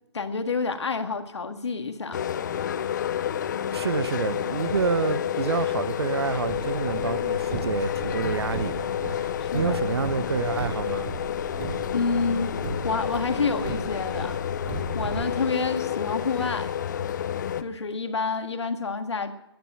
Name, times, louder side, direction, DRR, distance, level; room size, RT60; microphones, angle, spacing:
voice 1, 0.1-2.2 9.4-9.8 11.9-14.4 14.9-16.7 17.6-19.3, left 4 dB, 85° left, 1.8 m, -28 dB
sound 1, 2.1-17.6, left 9 dB, 45° left, 0.8 m, -29 dB
voice 2, 3.7-11.1, right 6 dB, 65° right, 0.9 m, -28 dB
Car, 6.2-15.2, right 3 dB, 35° right, 3.3 m, -37 dB
15.5 x 10.5 x 7.3 m
hypercardioid pair, 155°, 14 cm